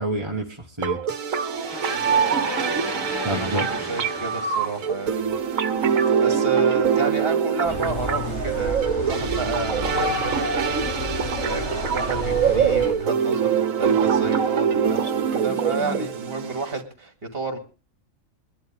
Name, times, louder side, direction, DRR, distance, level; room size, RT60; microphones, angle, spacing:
voice 1, 0.0-1.5 3.2-3.8, right 1 dB, 20° right, 0 dB, 1.5 m, -29 dB
sound 1, 0.8-16.8, right 7 dB, 75° right, 1.5 m, -24 dB
sound 2, 1.5-5.7, left 1 dB, 15° left, 2.1 m, -34 dB
voice 2, 3.2-10.8 11.4-17.6, right 4 dB, 45° right, 6 dB, 2.6 m, -31 dB
sound 3, 7.6-12.9, left 1 dB, 55° left, 3.6 m, -30 dB
22.5 x 11.5 x 3.5 m, 0.34 s
omnidirectional pair, 1.4 m